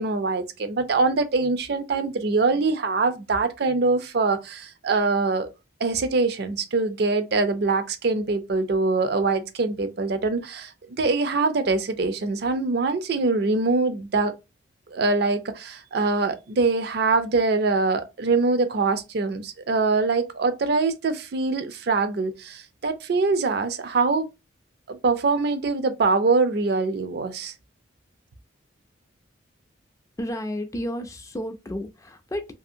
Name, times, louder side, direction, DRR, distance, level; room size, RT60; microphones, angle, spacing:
voice 1, 0.0-5.5 5.8-10.7 11.0-14.3 14.9-24.3 24.9-27.5, right 3 dB, 55° right, 0.4 m, -23 dB
voice 2, 30.2-32.5, equal, 15° left, 0.3 m, -32 dB
2.7 x 2.7 x 2.6 m
head